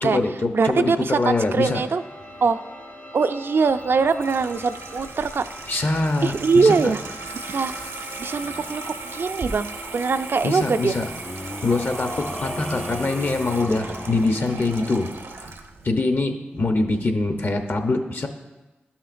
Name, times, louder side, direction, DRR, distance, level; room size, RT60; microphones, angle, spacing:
voice 1, 0.0-1.8 5.7-6.8 10.4-11.0 11.4-15.1 15.4-15.5 15.8-18.3, left 3 dB, 55° left, 5 dB, 0.8 m, -24 dB
voice 2, 0.5-2.0 2.4-2.6 3.1-5.5 6.2-7.0 7.4-7.7 8.2-10.9, right 4 dB, 60° right, 10 dB, 0.3 m, -22 dB
sound 1, 1.2-16.9, left 1 dB, 80° left, 1.9 m, -43 dB
Water tap faucet / Sink (filling or washing), 3.7-15.9, right 3 dB, 75° right, 0.7 m, -37 dB
sound 2, 8.4-8.9 11.0-14.5, left 1 dB, 15° left, 0.3 m, -35 dB
11.5 x 5.8 x 2.5 m, 1.2 s
cardioid pair, 40°, 4 cm